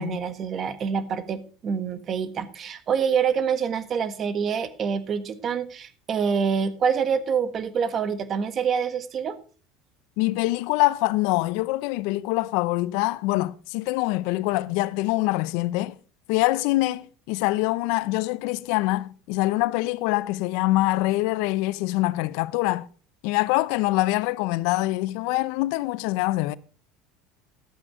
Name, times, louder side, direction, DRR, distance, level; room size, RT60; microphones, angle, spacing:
voice 1, 0.0-9.4, right 6 dB, 40° right, 1.6 m, -26 dB
voice 2, 10.2-16.0 16.3-22.9 23.2-26.5, left 19 dB, 70° left, 0.5 m, -24 dB
12.5 x 8.5 x 4.9 m
supercardioid pair, 100°, 0 cm